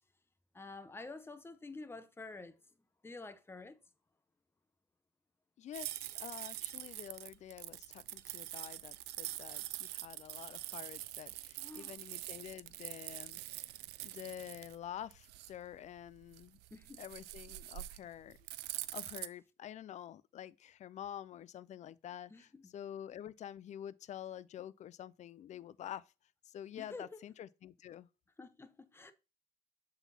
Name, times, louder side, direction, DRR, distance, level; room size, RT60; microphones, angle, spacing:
voice 1, 0.5-2.6 3.0-3.8 11.6-12.0 16.7-17.0 22.3-22.7 26.8-27.1 28.4-29.1, left 3 dB, 15° left, 0.8 m, -49 dB
voice 2, 5.6-13.7 14.0-16.6 17.0-26.1 26.4-28.1, left 10 dB, 45° left, 0.4 m, -48 dB
sound 1, 5.7-19.3, right 17 dB, 80° right, 0.4 m, -45 dB
7.2 x 3.9 x 4.1 m
cardioid pair, 110°, 17 cm